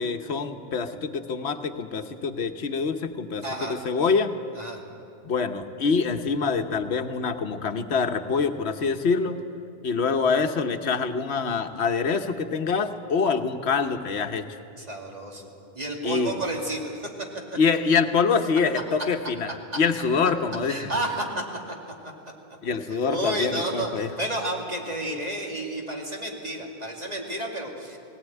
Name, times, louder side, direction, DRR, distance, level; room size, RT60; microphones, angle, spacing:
voice 1, 0.0-4.3 5.2-9.4 9.8-14.4 16.0-16.4 17.5-20.9 22.6-24.1, left 5 dB, 80° left, 7 dB, 1.2 m, -25 dB
voice 2, 3.4-3.8 4.6-4.8 14.8-15.5 15.7-17.1 20.7-21.4 23.0-28.0, right 1 dB, 40° right, -1 dB, 2.7 m, -31 dB
18.0 x 18.0 x 9.1 m, 2.5 s
omnidirectional pair, 1.1 m